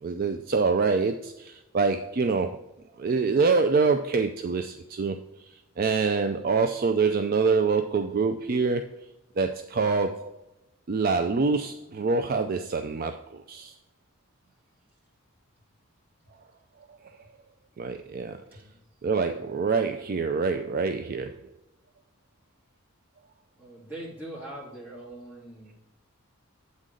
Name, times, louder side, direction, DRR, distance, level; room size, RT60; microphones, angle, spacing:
voice 1, 0.0-2.6 3.0-5.2 5.4-9.0 9.4-10.4 10.9-13.7 17.8-18.6 19.0-21.4, right 4 dB, 40° right, 7 dB, 0.3 m, -26 dB
voice 2, 18.2-18.9 23.6-25.7, right 1 dB, 10° right, -6 dB, 2.5 m, -42 dB
8.3 x 3.8 x 6.4 m, 0.89 s
head